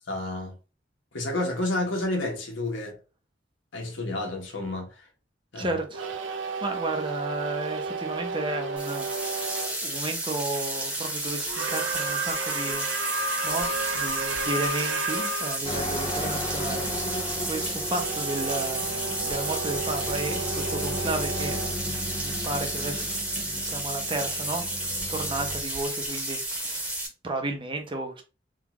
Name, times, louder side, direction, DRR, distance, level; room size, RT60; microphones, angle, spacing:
voice 1, 0.0-0.6 1.1-3.0 3.7-5.1 5.5-5.8, left 2 dB, 90° left, 1.2 m, -30 dB
voice 2, 5.5-6.1 6.6-9.5 9.8-26.9 27.2-28.2, right 2 dB, 25° right, 0.7 m, -33 dB
sound 1, 5.9-9.8 11.5-15.6 17.9-22.8, right 3 dB, 90° right, 0.5 m, -32 dB
sound 2, 8.8-27.1, right 1 dB, 5° right, 1.0 m, -32 dB
sound 3, 15.6-25.6, equal, 30° left, 0.4 m, -35 dB
3.7 x 2.4 x 2.9 m
head